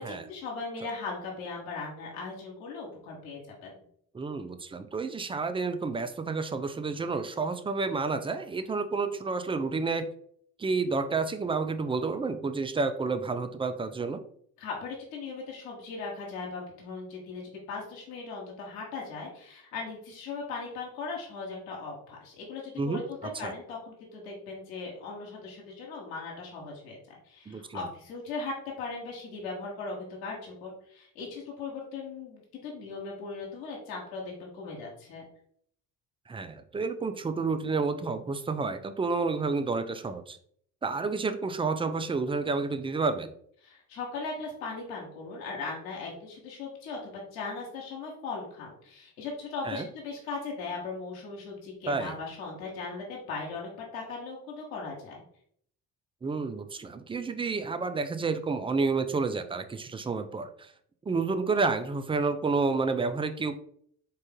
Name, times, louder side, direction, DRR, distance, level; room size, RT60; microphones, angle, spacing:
voice 1, 0.0-3.8 14.6-17.4 17.7-27.0 27.2-35.2 43.6-55.2, left 4 dB, 70° left, -2 dB, 1.2 m, -38 dB
voice 2, 4.1-10.1 10.6-14.2 22.8-23.0 23.3-23.5 27.5-27.9 36.3-40.4 40.8-43.3 49.6-49.9 51.9-52.1 56.2-60.7 61.1-63.6, right 4 dB, 15° right, 9 dB, 0.4 m, -30 dB
3.9 x 3.7 x 3.7 m, 0.64 s
figure-of-eight pair, 45°, 42 cm